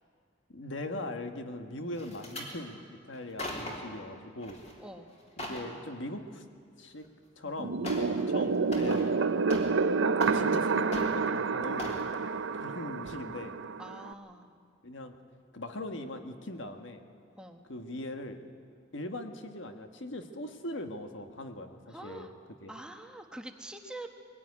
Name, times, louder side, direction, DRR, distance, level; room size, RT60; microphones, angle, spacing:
voice 1, 0.5-4.6 5.4-6.4 6.8-7.0 7.4-9.1 10.3-12.0 12.5-13.6 14.8-15.2 15.5-17.0 17.7-18.4 18.9-22.3 22.6-22.7, left 1 dB, 70° left, 6 dB, 1.6 m, -40 dB
sound 1, 2.0-2.5 3.1-3.9 4.4-4.7 5.1-5.7 7.0-7.1 7.8-8.2 8.5-9.9 10.1-10.6 10.9-11.4 11.8-12.1 12.5-12.7 13.1-13.2, left 1 dB, 35° left, 3.6 m, -40 dB
voice 2, 4.8-5.1 13.8-14.5 17.4-17.6 21.9-22.3 22.7-24.1, right 1 dB, 5° right, 4 dB, 1.2 m, -45 dB
sound 2, 7.6-14.1, right 4 dB, 70° right, 0.6 m, -29 dB
22.0 x 16.5 x 9.7 m, 2.2 s
head